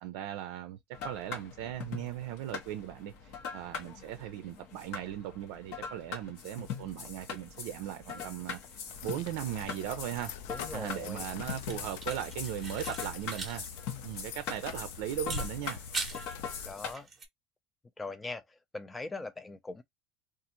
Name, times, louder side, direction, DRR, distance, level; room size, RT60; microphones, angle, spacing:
voice 1, 0.0-8.6 9.0-10.3 10.7-13.7 14.0-15.8, right 12 dB, 75° right, 0.4 m, -38 dB
sound 1, 0.9-16.9, left 6 dB, 65° left, 0.9 m, -42 dB
sound 2, 8.9-16.7, left 8 dB, 85° left, 0.4 m, -44 dB
voice 2, 10.5-11.3 16.7-17.1 18.0-19.8, left 3 dB, 15° left, 0.4 m, -41 dB
sound 3, 11.6-13.6 13.9-14.0 15.2-16.4 16.8-17.3, right 4 dB, 20° right, 0.8 m, -41 dB
2.5 x 2.4 x 2.9 m
supercardioid pair, 130°, 0 cm